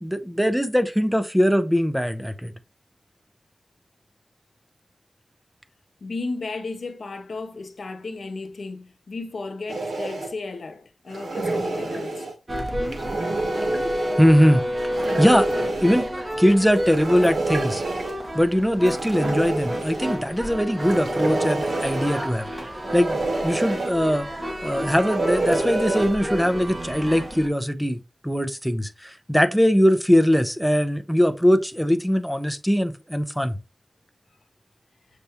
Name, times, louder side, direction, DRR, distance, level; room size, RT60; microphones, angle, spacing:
voice 1, 0.0-2.5 14.2-15.5 15.8-16.1 16.4-17.8 18.3-22.5 22.9-28.0 28.2-33.6, equal, ahead, 0.4 m, -21 dB
voice 2, 6.0-12.3, left 3 dB, 70° left, 0.6 m, -34 dB
sound 1, 9.7-10.3 11.1-12.3 12.8-14.2 14.9-16.1 16.8-18.2 18.9-20.2 20.8-22.3 22.8-23.9 24.6-26.2, right 2 dB, 85° right, 0.8 m, -28 dB
sound 2, 12.5-27.5, equal, 30° right, 0.9 m, -30 dB
6.6 x 2.2 x 2.8 m
wide cardioid pair, 105°, 0 cm